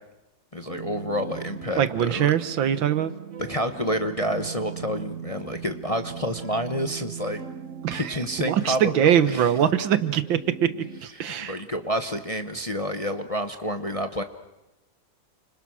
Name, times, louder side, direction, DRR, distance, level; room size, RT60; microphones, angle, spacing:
voice 1, 0.5-2.3 3.4-7.4 7.9-9.5 11.1-14.2, equal, 25° left, 8 dB, 0.8 m, -29 dB
sound 1, 0.7-11.0, right 8 dB, 45° right, 1.3 m, -39 dB
voice 2, 1.8-3.1 7.8-8.1 8.5-10.7 11.0-11.6, right 9 dB, 85° right, 13 dB, 1.9 m, -22 dB
29.5 x 26.5 x 6.4 m, 0.99 s
omnidirectional pair, 2.1 m